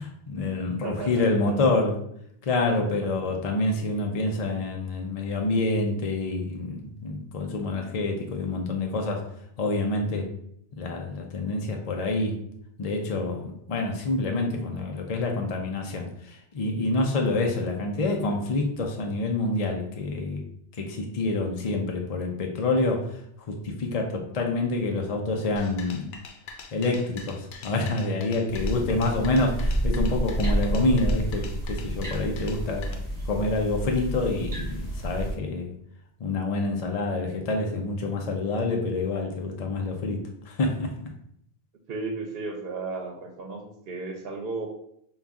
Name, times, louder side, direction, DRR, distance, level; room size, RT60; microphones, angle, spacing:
voice 1, 0.0-1.9 2.4-9.2 9.6-10.3 10.8-12.3 12.8-20.4 20.8-23.2 23.6-26.1 26.7-32.9 33.3-35.7 36.2-41.1, left 2 dB, 45° left, 2 dB, 0.6 m, -27 dB
voice 2, 0.6-1.9 2.8-3.2 32.9-33.0 41.9-44.7, right 3 dB, 70° right, 2 dB, 0.8 m, -35 dB
sound 1, 25.6-32.9, left 4 dB, 80° left, 0.9 m, -44 dB
sound 2, 28.5-35.3, right 1 dB, 20° right, 1.2 m, -29 dB
5.5 x 2.4 x 3.5 m, 0.71 s
omnidirectional pair, 1.0 m